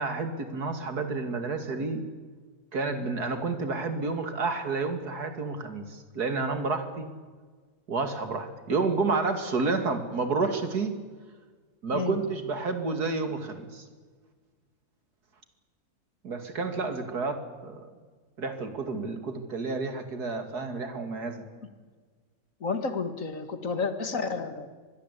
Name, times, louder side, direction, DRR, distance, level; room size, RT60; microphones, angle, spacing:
voice 1, 0.0-2.0 2.7-7.1 7.9-11.0 11.8-13.8 16.2-17.9 18.4-21.4, right 3 dB, 90° right, 8 dB, 3.0 m, -30 dB
voice 2, 22.6-24.7, left 4 dB, 60° left, 9 dB, 2.2 m, -31 dB
25.5 x 20.5 x 8.4 m, 1.5 s
omnidirectional pair, 1.6 m